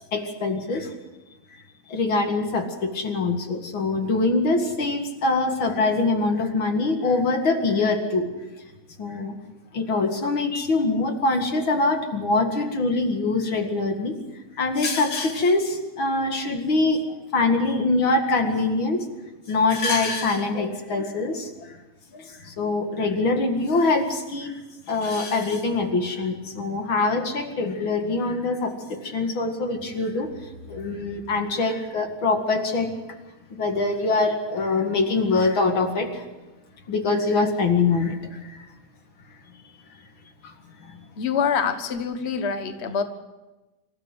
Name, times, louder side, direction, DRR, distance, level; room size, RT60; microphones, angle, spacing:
voice 1, 0.1-0.9 1.9-8.3 9.0-9.3 9.7-14.1 14.6-17.0 17.3-19.1 19.5-21.8 22.1-24.6 24.9-32.9 33.5-36.3 36.9-38.7 40.4-40.5 40.9-41.0, left 3 dB, 45° left, 5 dB, 2.6 m, -24 dB
voice 2, 41.2-43.0, left 6 dB, 80° left, 8 dB, 0.5 m, -25 dB
26.0 x 14.5 x 7.9 m, 1.1 s
omnidirectional pair, 3.4 m